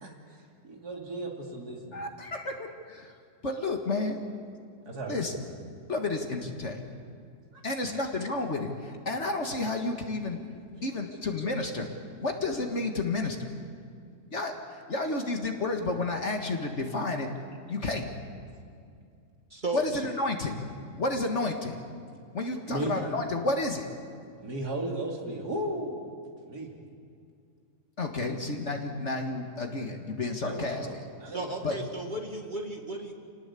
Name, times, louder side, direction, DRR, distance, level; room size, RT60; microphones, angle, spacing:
voice 1, 0.0-2.0 4.9-5.4 10.7-10.8 22.7-23.0 24.4-26.1 26.4-26.7 30.4-31.8, right 1 dB, 80° right, 0 dB, 3.4 m, -36 dB
voice 2, 1.9-3.1 3.4-4.2 5.1-5.3 5.9-6.8 7.6-10.4 10.8-11.9 12.2-13.5 14.3-17.3 17.7-18.1 19.7-20.6 21.0-21.8 22.3-23.9 28.0-30.9 31.6-31.8, left 2 dB, 50° left, 4 dB, 2.0 m, -31 dB
voice 3, 19.5-19.8 31.3-33.1, right 2 dB, 30° right, 3 dB, 2.3 m, -34 dB
27.5 x 18.5 x 8.5 m, 2.3 s
omnidirectional pair, 1.7 m